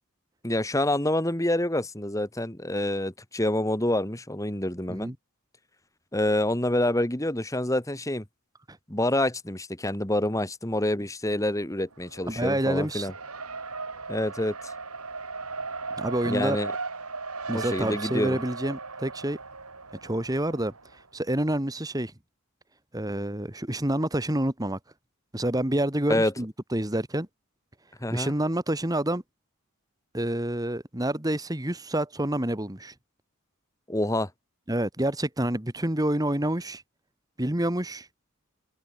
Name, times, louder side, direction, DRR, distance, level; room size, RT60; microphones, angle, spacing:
voice 1, 0.4-5.1 6.1-8.2 8.9-13.1 14.1-14.7 16.3-16.7 17.5-18.4 26.1-26.3 28.0-28.3 33.9-34.3, left 1 dB, 15° left, 1.8 m, -27 dB
Race car auto racing, 11.9-21.0, right 4 dB, 90° right, 5.9 m, -37 dB
voice 2, 12.3-13.1 16.0-16.6 17.5-19.4 20.0-20.7 21.1-22.1 22.9-24.8 25.3-27.3 28.1-29.2 30.1-32.9 34.7-36.8 37.4-38.1, right 1 dB, 15° right, 1.7 m, -28 dB
head